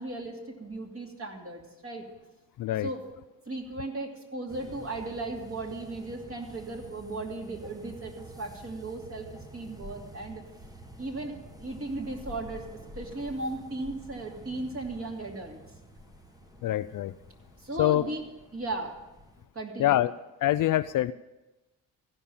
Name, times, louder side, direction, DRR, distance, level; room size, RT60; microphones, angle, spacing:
voice 1, 0.0-2.0 2.8-3.0 3.5-10.4 11.0-11.3 11.6-12.7 12.9-15.6 17.6-18.2 18.5-19.0 19.5-20.0, right 2 dB, 35° right, 1 dB, 2.7 m, -36 dB
voice 2, 2.6-2.9 16.6-17.1 17.8-18.1 19.8-20.1 20.4-21.1, left 14 dB, 55° left, 14 dB, 0.4 m, -25 dB
sound 1, 4.5-19.5, right 1 dB, 10° right, 1.2 m, -49 dB
15.0 x 5.6 x 8.7 m, 1.0 s
supercardioid pair, 60°, 40 cm